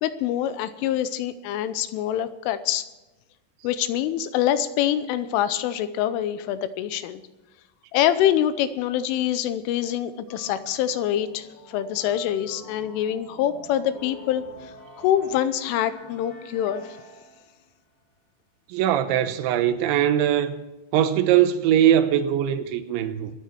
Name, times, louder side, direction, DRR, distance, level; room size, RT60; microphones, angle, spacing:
voice 1, 0.0-2.9 3.6-7.2 7.9-17.0, left 11 dB, 90° left, 3.3 m, -25 dB
sound 1, 10.3-17.6, left 1 dB, 65° left, 6.5 m, -46 dB
voice 2, 18.7-20.6 20.9-23.3, right 10 dB, 75° right, 3.2 m, -21 dB
24.5 x 9.1 x 4.6 m
omnidirectional pair, 5.6 m